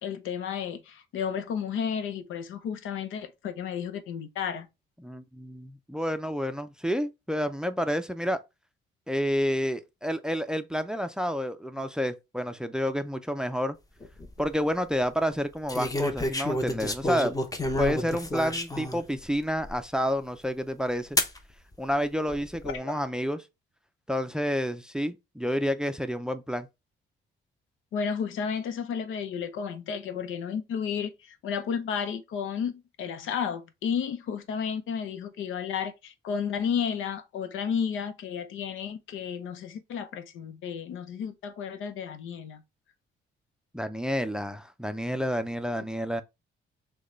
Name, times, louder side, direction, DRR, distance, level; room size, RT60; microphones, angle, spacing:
voice 1, 0.0-4.7 22.7-23.0 27.9-42.6, left 7 dB, 80° left, 0.7 m, -32 dB
voice 2, 5.0-8.4 9.1-13.8 14.4-17.3 17.8-21.2 21.8-23.4 24.1-26.7 43.7-46.2, equal, 5° right, 0.4 m, -29 dB
sound 1, 14.0-14.4 15.7-19.0 19.6-19.7 21.2-21.4 22.3-22.8, left 1 dB, 20° left, 0.8 m, -29 dB
6.3 x 2.3 x 3.2 m
cardioid pair, 90°, 20 cm